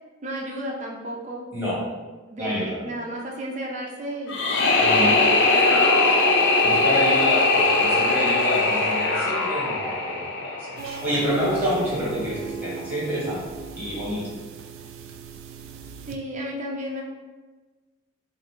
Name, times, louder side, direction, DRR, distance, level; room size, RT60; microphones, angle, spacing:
voice 1, 0.2-1.5 2.3-4.4 4.8-5.2 5.5-5.9 16.1-17.0, right 1 dB, 35° right, -1 dB, 0.6 m, -33 dB
voice 2, 2.4-2.8 4.8-5.1 6.6-10.5 10.9-13.4 13.7-14.2, equal, 10° right, -8 dB, 1.4 m, -27 dB
sound 1, 4.3-11.3, left 3 dB, 60° left, 0.5 m, -20 dB
sound 2, 4.6-7.1 8.1-10.6, left 1 dB, 15° left, 1.0 m, -35 dB
sound 3, 10.8-16.2, right 5 dB, 90° right, 0.4 m, -37 dB
3.9 x 2.7 x 3.2 m, 1.3 s
head